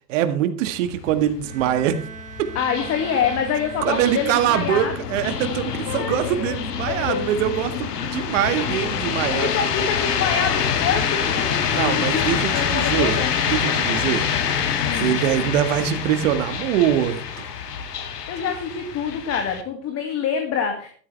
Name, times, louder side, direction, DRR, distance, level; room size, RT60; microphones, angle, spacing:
voice 1, 0.1-2.0 3.9-9.5 11.7-13.2 13.5-14.3 14.9-17.5, right 11 dB, 50° right, 9 dB, 1.8 m, -23 dB
sound 1, 0.6-19.6, left 7 dB, 65° left, 2.3 m, -26 dB
Bowed string instrument, 1.4-5.2, right 7 dB, 15° right, 1.0 m, -40 dB
voice 2, 2.5-4.9 5.9-6.6 6.9-7.3 9.3-13.3 14.8-15.1 18.3-20.9, left 7 dB, 30° left, 4 dB, 2.4 m, -26 dB
15.5 x 12.5 x 3.4 m, 0.42 s
figure-of-eight pair, 100°, 50 cm